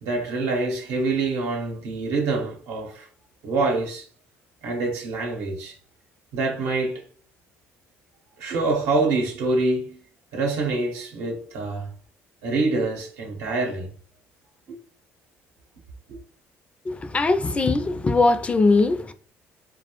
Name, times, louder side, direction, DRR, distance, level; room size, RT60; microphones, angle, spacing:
voice 1, 0.0-3.1 3.4-4.1 4.6-5.8 6.3-7.0 8.4-10.0 10.3-11.9 12.4-13.9 16.1-16.2, right 3 dB, 85° right, 0.8 m, -25 dB
voice 2, 16.9-19.1, left 3 dB, 25° left, 0.3 m, -20 dB
2.3 x 2.0 x 2.9 m
cardioid pair, 95°, 5 cm